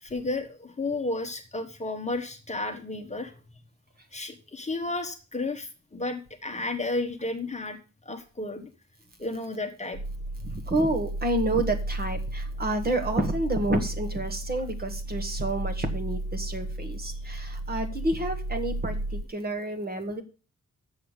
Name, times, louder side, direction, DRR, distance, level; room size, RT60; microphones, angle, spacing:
voice 1, 0.0-3.3 4.1-8.7 9.2-10.0 17.1-17.2, left 2 dB, 25° left, 5 dB, 1.1 m, -32 dB
sound 1, 9.9-19.2, right 1 dB, 70° right, 1.3 m, -33 dB
voice 2, 10.4-20.2, right 1 dB, 30° right, 5 dB, 1.5 m, -29 dB
7.2 x 6.8 x 8.0 m, 0.35 s
wide cardioid pair, 150°, 30 cm